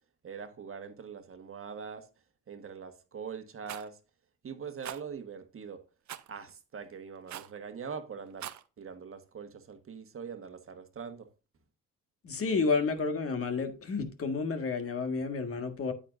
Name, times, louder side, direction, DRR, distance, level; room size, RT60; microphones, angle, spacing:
voice 1, 0.2-2.1 2.5-4.0 4.4-5.8 6.3-8.5 8.8-11.3, right 6 dB, 45° right, 1.4 m, -42 dB
Rattle, 3.7-3.9 4.8-5.0 6.1-6.3 7.3-7.6 8.3-8.6, right 12 dB, 65° right, 0.8 m, -41 dB
voice 2, 12.2-15.9, left 4 dB, 50° left, 1.7 m, -30 dB
9.0 x 9.0 x 2.5 m
cardioid pair, 90°, 30 cm